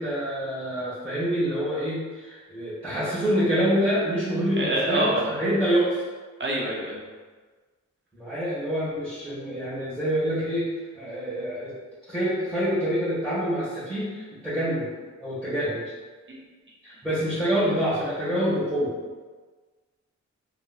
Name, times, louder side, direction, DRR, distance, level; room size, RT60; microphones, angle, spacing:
voice 1, 0.0-6.0 8.1-10.7 10.9-11.8 12.1-14.9 15.2-15.8 16.8-18.9, equal, 5° left, -13 dB, 1.2 m, -26 dB
voice 2, 4.6-5.4 6.4-7.0 16.3-16.4, right 1 dB, 40° right, -3 dB, 0.7 m, -26 dB
3.3 x 3.0 x 2.2 m, 1.4 s
wide cardioid pair, 85°, 30 cm